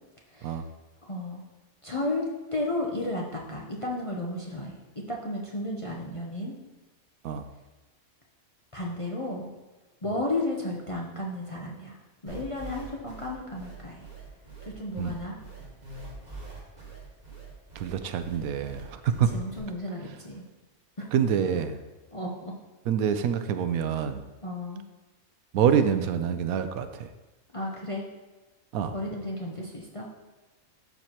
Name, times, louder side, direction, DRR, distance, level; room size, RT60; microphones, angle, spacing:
voice 1, 1.1-1.4 1.8-4.8 5.1-6.5 8.7-9.5 10.0-12.0 12.2-14.1 14.6-15.4 19.3-20.4 21.0-21.1 21.5-21.6 22.1-22.5 24.4-24.8 27.5-28.1 28.9-30.1, left 1 dB, 30° left, -2 dB, 0.7 m, -33 dB
sound 1, 12.3-19.6, right 3 dB, 30° right, 1.6 m, -44 dB
voice 2, 17.8-19.3 21.1-21.8 22.9-24.3 25.5-27.1 28.7-28.9, right 8 dB, 80° right, 9 dB, 1.0 m, -26 dB
12.0 x 4.6 x 2.9 m, 1.1 s
omnidirectional pair, 1.5 m